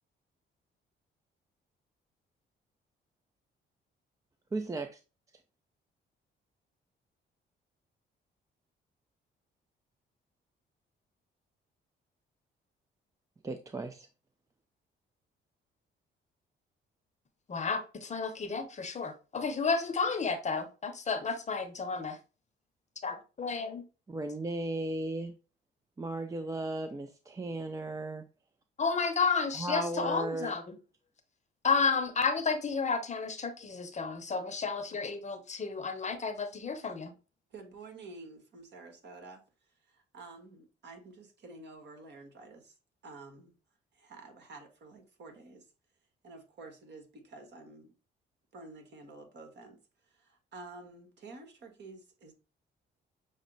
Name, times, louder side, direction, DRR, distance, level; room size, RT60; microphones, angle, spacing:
voice 1, 4.5-5.0 13.4-14.1 24.1-25.3 26.0-28.2 29.6-30.5, right 2 dB, 15° right, 0.4 m, -35 dB
voice 2, 17.5-22.2 23.0-23.8 28.8-30.7 31.6-37.1, left 4 dB, 35° left, 0.8 m, -32 dB
voice 3, 37.5-39.4 39.8-42.7 43.0-43.5 43.9-45.6 46.2-47.9 48.5-52.3, right 3 dB, 60° right, 1.4 m, -50 dB
6.1 x 2.1 x 3.8 m
cardioid pair, 90°, 20 cm